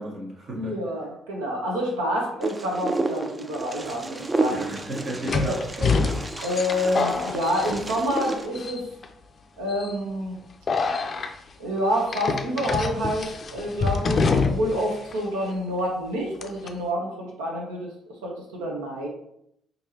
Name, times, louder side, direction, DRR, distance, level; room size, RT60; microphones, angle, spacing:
voice 1, 0.0-0.8 4.5-6.2, right 1 dB, 55° right, -2 dB, 1.3 m, -34 dB
voice 2, 0.5-4.8 5.5-5.6 6.4-8.8 9.6-10.4 11.6-17.9 18.2-19.1, equal, 80° right, -1 dB, 0.9 m, -28 dB
Wind, 2.4-8.5, right 2 dB, 25° right, 0.5 m, -31 dB
sound 1, 3.9-4.0 5.3-8.3 8.5-9.1 9.7-9.9 10.7-11.3 12.1-14.8 15.1-15.2 16.4-16.7, left 4 dB, 45° left, 0.4 m, -26 dB
4.6 x 2.7 x 2.9 m, 0.75 s
hypercardioid pair, 45°, 0 cm